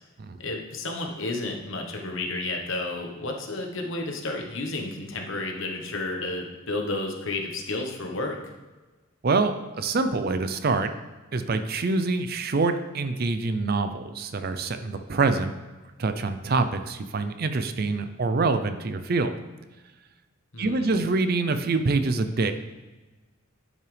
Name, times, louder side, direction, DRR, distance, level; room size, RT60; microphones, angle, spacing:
voice 1, 0.4-8.4 20.5-21.0, left 2 dB, 60° left, 2 dB, 1.2 m, -31 dB
voice 2, 9.2-10.9 11.3-15.5 16.0-19.4 20.6-22.5, right 3 dB, 45° right, 9 dB, 0.5 m, -25 dB
11.0 x 5.6 x 3.4 m, 1.2 s
head